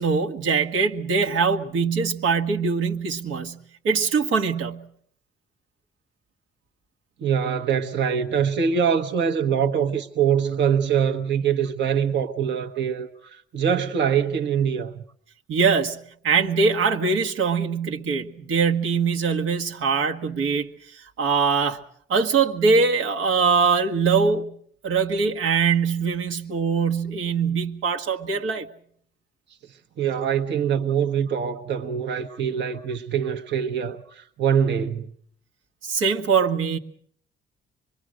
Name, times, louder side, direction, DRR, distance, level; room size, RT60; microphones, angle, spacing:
voice 1, 0.0-3.6 3.8-4.9 15.5-16.0 16.2-21.8 22.1-24.5 24.8-28.7 35.8-36.8, right 5 dB, 85° right, 1.8 m, -22 dB
voice 2, 7.2-15.0 30.0-35.1, right 7 dB, 65° right, 1.3 m, -24 dB
26.0 x 22.5 x 6.4 m
cardioid pair, 90°, 20 cm